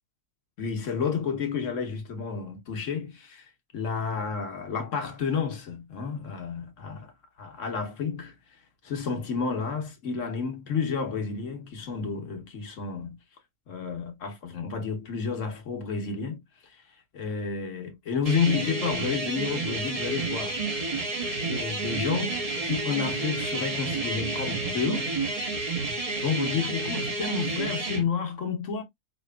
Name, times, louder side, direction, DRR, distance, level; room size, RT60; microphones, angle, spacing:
voice 1, 0.6-7.1 7.4-8.4 8.8-13.2 13.7-20.6 21.5-25.1 26.2-28.8, left 6 dB, 60° left, 1.2 m, -31 dB
sound 1, 18.3-28.0, right 3 dB, 30° right, 1.0 m, -30 dB
5.1 x 2.9 x 2.2 m
omnidirectional pair, 1.6 m